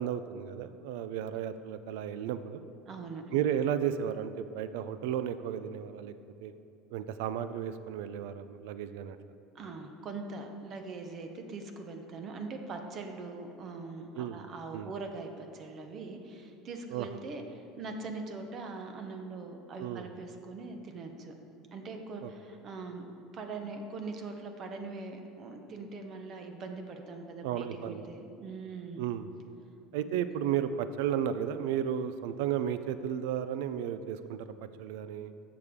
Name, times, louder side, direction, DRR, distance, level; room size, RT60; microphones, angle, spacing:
voice 1, 0.0-2.6 3.3-6.1 6.4-6.5 6.9-9.2 14.2-14.4 14.7-14.9 16.9-17.2 19.8-20.1 22.2-22.3 27.4-28.1 29.0-29.3 29.9-35.3, right 9 dB, 80° right, 12 dB, 0.4 m, -33 dB
voice 2, 2.9-3.2 9.5-17.4 17.8-21.3 21.7-23.1 23.3-29.0 30.1-30.2, right 3 dB, 30° right, 5 dB, 0.8 m, -42 dB
14.5 x 6.8 x 3.6 m, 2.7 s
cardioid pair, 165°, 0 cm